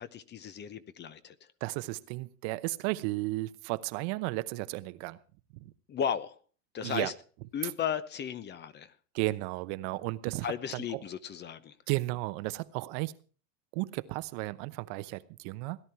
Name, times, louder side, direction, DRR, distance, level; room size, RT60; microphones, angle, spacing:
voice 1, 0.0-1.5 5.9-6.4 6.7-7.1 7.5-8.9 10.4-11.8, left 8 dB, 25° left, 0.8 m, -35 dB
voice 2, 1.6-5.2 5.5-5.7 6.8-7.1 9.1-10.5 10.7-11.0 11.9-13.2 13.7-15.8, right 20 dB, 60° right, 0.9 m, -34 dB
17.0 x 11.0 x 4.5 m
supercardioid pair, 120°, 38 cm